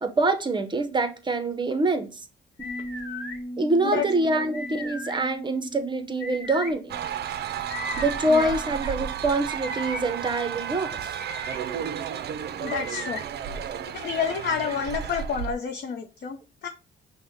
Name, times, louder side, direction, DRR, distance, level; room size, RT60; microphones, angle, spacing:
voice 1, 0.0-2.2 3.6-7.0 8.0-11.2, right 2 dB, 25° right, 0.7 m, -25 dB
Bass guitar, 2.6-8.8, equal, 30° left, 1.4 m, -40 dB
sound 1, 2.6-3.4 4.5-5.2 6.2-6.7 7.7-8.5 9.5-10.0 11.0-11.6 12.7-13.2, left 2 dB, 5° left, 1.7 m, -36 dB
sound 2, 6.9-15.5, right 9 dB, 55° right, 0.4 m, -33 dB
voice 2, 8.3-8.6 12.6-13.2 13.9-16.7, left 7 dB, 55° left, 0.6 m, -29 dB
5.5 x 2.2 x 3.4 m
cardioid pair, 90°, 20 cm